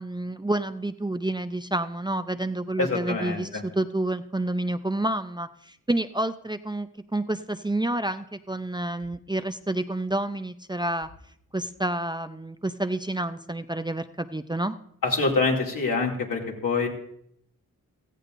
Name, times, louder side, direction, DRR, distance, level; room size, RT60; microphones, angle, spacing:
voice 1, 0.0-11.1 11.5-14.7, right 1 dB, 15° right, 10 dB, 0.5 m, -29 dB
voice 2, 2.8-3.6 15.0-16.9, left 3 dB, 75° left, -1 dB, 2.6 m, -25 dB
16.5 x 14.0 x 2.6 m, 0.71 s
cardioid pair, 50°, 34 cm